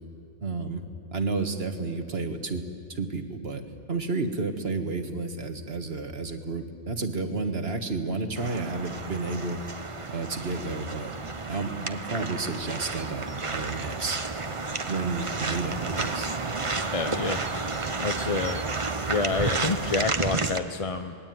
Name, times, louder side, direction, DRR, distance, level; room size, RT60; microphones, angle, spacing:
voice 1, 0.4-0.8 1.1-2.6 2.9-3.6 3.9-9.6 10.1-11.1 11.5-14.2 14.9-16.3, right 3 dB, 60° right, 7 dB, 1.9 m, -31 dB
sound 1, 8.4-20.6, right 3 dB, 30° right, 1.0 m, -31 dB
voice 2, 16.9-17.4 18.0-18.6 19.1-21.2, left 4 dB, 35° left, 7 dB, 0.7 m, -28 dB
27.0 x 20.0 x 9.3 m, 2.6 s
omnidirectional pair, 1.2 m